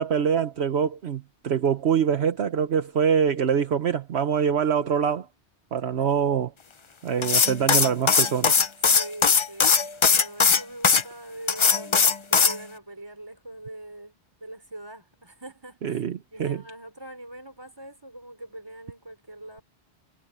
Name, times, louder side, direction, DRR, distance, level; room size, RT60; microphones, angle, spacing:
voice 1, 0.0-5.3 5.7-6.5 7.0-8.5 15.8-16.6, right 7 dB, 70° right, 1.2 m, -24 dB
sound 1, 7.2-11.0 11.5-12.6, left 5 dB, 35° left, 0.5 m, -19 dB
voice 2, 8.9-9.8 10.0-19.6, right 1 dB, 20° right, 3.8 m, -42 dB
omnidirectional pair, 1.1 m